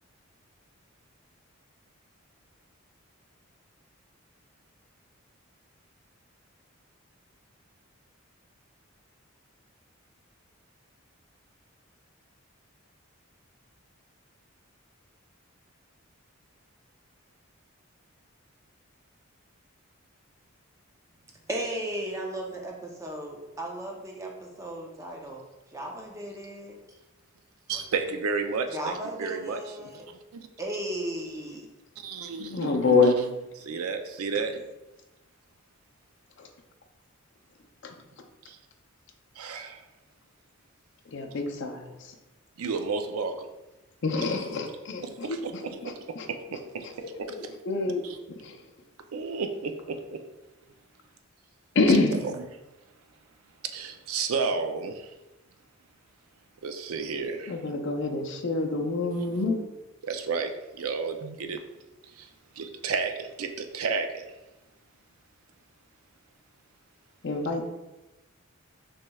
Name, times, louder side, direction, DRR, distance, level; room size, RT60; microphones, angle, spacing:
voice 1, 21.5-25.5 25.7-26.8 27.7-27.8 28.7-30.1 30.6-31.7, right 1 dB, 15° right, 0 dB, 0.6 m, -35 dB
voice 2, 27.7-29.9 30.3-30.5 32.0-33.3 33.6-34.6 38.5-38.6 39.4-39.8 41.3-41.4 42.6-43.5 44.2-44.6 45.0-45.8 46.5-46.9 48.0-48.2 49.1-50.0 52.1-52.3 53.6-55.1 56.6-57.5 59.1-59.4 60.0-61.6 62.2-62.3 62.6-64.2, right 5 dB, 85° right, 6 dB, 0.4 m, -32 dB
voice 3, 32.4-33.2 36.4-36.5 37.8-37.9 41.1-42.0 44.0-46.3 46.8-48.0 48.4-48.6 51.7-52.2 57.5-59.6 67.2-67.7, left 3 dB, 55° left, 4 dB, 0.5 m, -27 dB
6.1 x 3.0 x 2.3 m, 1.0 s
head